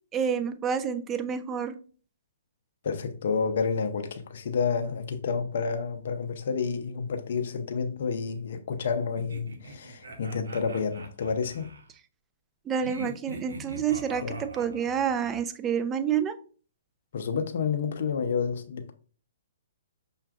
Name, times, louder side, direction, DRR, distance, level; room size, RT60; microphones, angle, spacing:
voice 1, 0.1-1.7 12.7-16.3, right 7 dB, 20° right, 0.4 m, -28 dB
voice 2, 2.8-11.7 14.2-14.4 17.1-18.9, left 5 dB, 60° left, 0.6 m, -29 dB
sound 1, 9.2-11.9 12.8-15.4, right 2 dB, 80° right, 0.8 m, -42 dB
5.7 x 2.4 x 2.4 m
hypercardioid pair, 140°, 0 cm